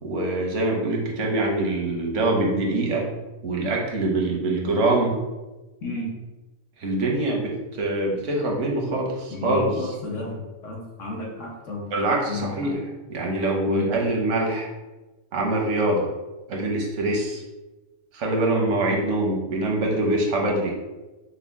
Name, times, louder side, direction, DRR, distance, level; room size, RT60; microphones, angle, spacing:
voice 1, 0.0-3.1 3.4-5.2 6.8-9.9 11.9-12.8 13.1-14.7 15.3-16.1 16.5-17.4 18.1-20.7, right 2 dB, 80° right, 0 dB, 1.2 m, -24 dB
voice 2, 9.3-11.8 12.3-12.8 13.7-13.9, left 3 dB, 85° left, -2 dB, 1.3 m, -32 dB
5.5 x 2.2 x 3.5 m, 1.1 s
omnidirectional pair, 1.2 m